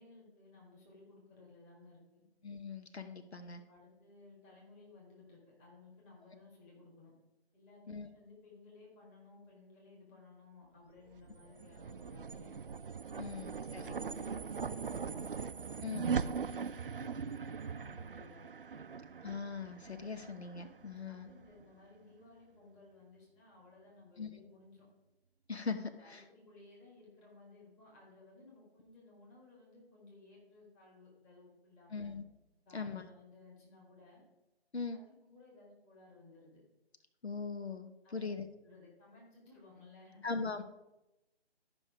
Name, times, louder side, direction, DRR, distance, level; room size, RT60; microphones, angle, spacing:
voice 1, 0.0-2.2 3.3-7.1 7.5-12.5 13.2-15.4 15.8-18.5 21.0-24.9 26.0-32.1 32.7-34.2 34.9-36.6 38.0-38.3 38.6-40.2, left 3 dB, 10° left, -4 dB, 1.7 m, -58 dB
voice 2, 2.4-3.6 7.9-8.1 13.2-13.8 15.8-16.1 19.2-21.3 24.2-24.3 25.5-26.2 31.9-32.2 32.7-33.0 34.7-35.0 37.2-38.4 40.2-40.6, left 4 dB, 80° left, 8 dB, 1.0 m, -40 dB
sound 1, 11.1-21.6, right 6 dB, 55° right, 0.4 m, -40 dB
12.5 x 5.3 x 4.8 m, 0.96 s
figure-of-eight pair, 150°, 32 cm